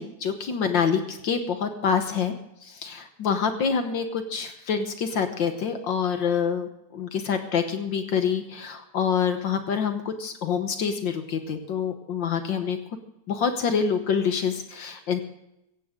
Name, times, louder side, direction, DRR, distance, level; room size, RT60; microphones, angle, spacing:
voice 1, 0.0-2.3 2.6-12.8 13.3-15.2, left 6 dB, 60° left, 7 dB, 1.3 m, -26 dB
16.5 x 16.0 x 3.7 m, 0.84 s
omnidirectional pair, 3.3 m